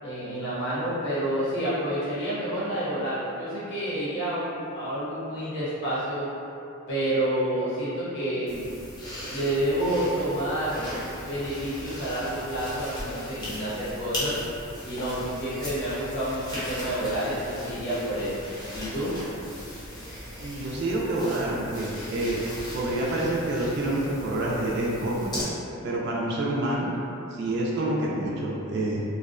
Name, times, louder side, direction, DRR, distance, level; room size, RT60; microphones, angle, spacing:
voice 1, 0.0-6.3 6.9-8.6 9.3-10.9 11.3-14.4 14.8-18.3 18.7-19.1, right 1 dB, 60° left, -11 dB, 0.7 m, -29 dB
sound 1, 8.5-25.4, equal, 20° left, 0.6 m, -38 dB
voice 2, 20.4-22.4 22.7-25.3 25.8-26.9 27.3-29.0, right 1 dB, 55° right, -4 dB, 0.3 m, -27 dB
2.6 x 2.0 x 2.4 m, 2.8 s
head